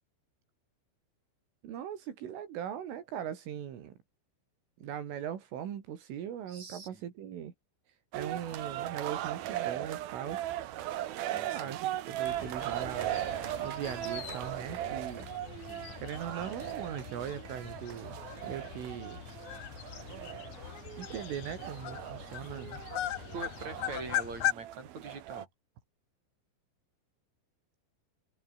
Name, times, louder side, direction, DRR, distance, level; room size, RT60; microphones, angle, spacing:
voice 1, 1.6-3.9 4.8-7.5 8.1-10.5 11.4-15.3 16.0-19.2 21.0-22.8, right 9 dB, 80° right, 5.5 m, -40 dB
voice 2, 6.5-7.0 11.3-11.8 15.7-16.0 23.3-25.5, right 4 dB, 35° right, 8.4 m, -44 dB
sound 1, 8.1-25.4, right 13 dB, 65° right, 2.6 m, -39 dB
sound 2, 12.2-24.5, left 12 dB, 85° left, 1.7 m, -40 dB
omnidirectional pair, 5.6 m